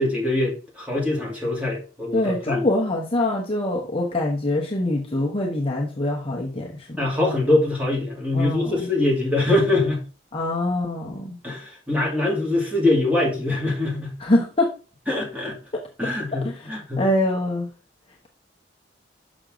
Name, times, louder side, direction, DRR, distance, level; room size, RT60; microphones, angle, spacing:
voice 1, 0.0-2.7 7.0-10.0 11.4-14.1 15.1-15.6 16.0-17.0, left 2 dB, 5° right, 2.4 m, -23 dB
voice 2, 2.1-7.0 8.3-8.9 10.3-11.4 14.2-14.7 15.7-15.8 16.3-17.7, left 1 dB, 30° left, 1.0 m, -24 dB
6.5 x 6.2 x 3.8 m
head